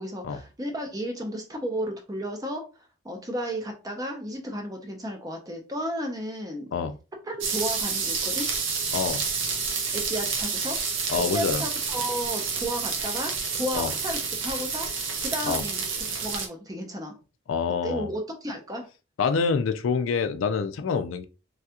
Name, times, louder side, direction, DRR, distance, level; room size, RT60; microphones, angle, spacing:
voice 1, 0.0-2.7 3.0-6.7 7.2-8.5 9.9-14.9 15.2-17.1 17.7-18.9, equal, 20° right, 0.5 m, -33 dB
sound 1, 7.4-16.5, right 5 dB, 65° right, 0.6 m, -29 dB
voice 2, 8.9-9.2 11.1-11.6 13.7-13.9 15.5-15.6 17.5-18.1 19.2-21.2, left 5 dB, 75° left, 0.4 m, -26 dB
3.3 x 2.3 x 2.8 m
head